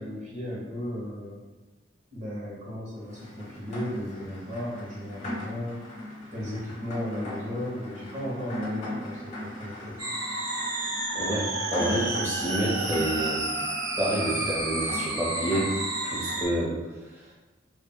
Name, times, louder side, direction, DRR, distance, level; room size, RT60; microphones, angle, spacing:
voice 1, 0.0-1.4 2.1-5.8 6.3-10.2, equal, 40° right, -6 dB, 1.0 m, -35 dB
Rain, 3.1-16.4, left 1 dB, 35° left, 1.1 m, -39 dB
sound 1, 10.0-16.5, right 2 dB, 80° right, 1.3 m, -30 dB
voice 2, 11.1-13.4 14.0-15.7 16.0-17.3, right 1 dB, 15° right, -6 dB, 1.0 m, -29 dB
5.3 x 2.4 x 2.3 m, 1.2 s
head